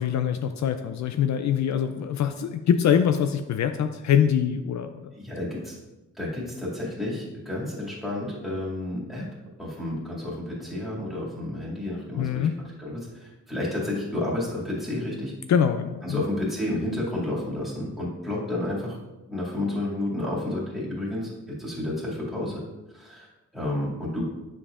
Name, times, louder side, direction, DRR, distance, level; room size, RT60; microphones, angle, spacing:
voice 1, 0.0-5.1 12.2-12.5 15.5-16.2, left 8 dB, 65° left, 8 dB, 0.4 m, -24 dB
voice 2, 5.1-5.8 6.2-9.2 9.6-15.3 16.0-19.0 19.3-22.6 22.9-23.3 23.5-24.3, left 1 dB, ahead, -7 dB, 2.4 m, -31 dB
9.8 x 6.9 x 2.5 m, 1.0 s
wide cardioid pair, 170°, 30 cm